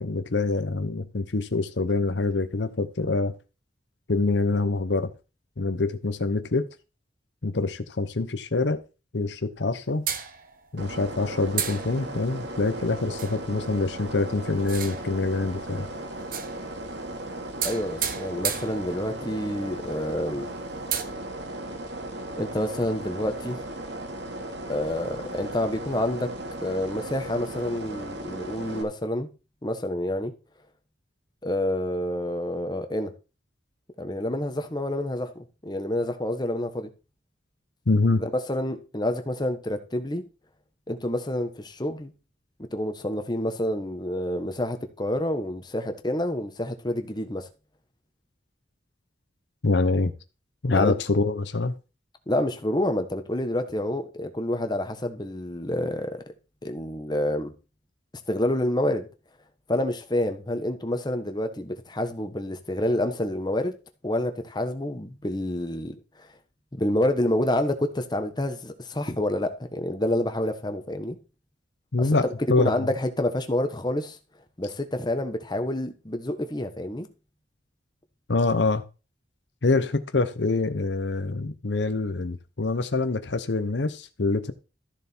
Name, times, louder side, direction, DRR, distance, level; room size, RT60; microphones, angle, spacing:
voice 1, 0.0-3.3 4.1-5.1 5.6-6.7 7.4-8.8 9.1-10.0 10.7-15.9 37.9-38.2 49.6-50.1 50.6-51.7 71.9-72.2 72.5-72.7 78.3-78.8 79.6-84.5, left 3 dB, 65° left, 0.8 m, -25 dB
sound 1, 10.1-10.8 11.6-12.4 13.2-13.5 14.6-15.3 16.2-16.9 17.6-19.3 19.8-19.9 20.1-20.2 20.7-21.0, right 8 dB, 50° right, 1.2 m, -32 dB
sound 2, 10.8-28.8, right 1 dB, 65° right, 2.5 m, -36 dB
voice 2, 17.6-20.5 22.4-23.6 24.7-26.3 26.6-29.3 29.6-30.3 31.4-33.1 34.0-36.9 38.2-40.2 40.9-42.1 42.7-47.5 50.7-50.9 52.3-56.2 56.6-57.5 58.3-59.1 59.7-63.7 64.0-66.3 66.7-71.2 72.0-72.1 72.6-74.2 74.6-77.1, left 1 dB, 20° left, 1.2 m, -28 dB
13.0 x 6.9 x 4.5 m
head